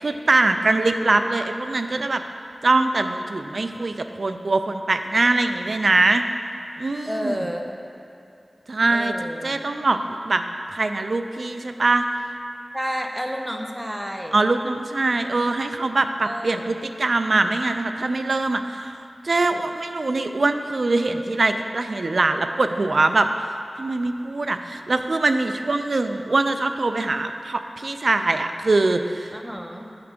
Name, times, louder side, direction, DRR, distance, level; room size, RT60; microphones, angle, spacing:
voice 1, 0.0-2.2 2.6-6.2 6.8-7.5 8.7-9.1 9.4-10.0 10.2-10.4 10.7-12.1 14.3-19.0 19.2-23.5 23.8-29.4, right 3 dB, 60° right, 8 dB, 0.4 m, -22 dB
voice 2, 7.1-7.8 8.9-9.6 12.7-14.4 16.2-16.7 29.3-29.9, equal, 5° right, 3 dB, 0.8 m, -30 dB
9.6 x 3.4 x 6.6 m, 2.7 s
wide cardioid pair, 60°, 0 cm